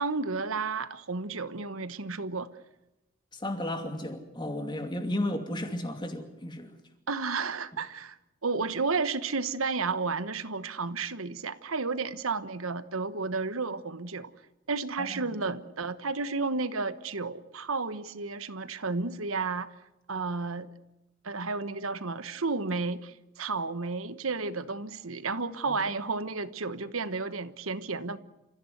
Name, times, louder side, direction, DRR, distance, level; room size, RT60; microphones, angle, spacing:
voice 1, 0.0-2.5 7.1-8.2 8.4-14.3 14.7-19.7 20.1-20.7 21.2-28.2, right 4 dB, 85° right, 13 dB, 1.2 m, -32 dB
voice 2, 3.3-6.7 15.0-15.4 25.7-25.8, left 1 dB, 20° left, 5 dB, 2.7 m, -34 dB
29.0 x 15.5 x 8.0 m, 0.97 s
head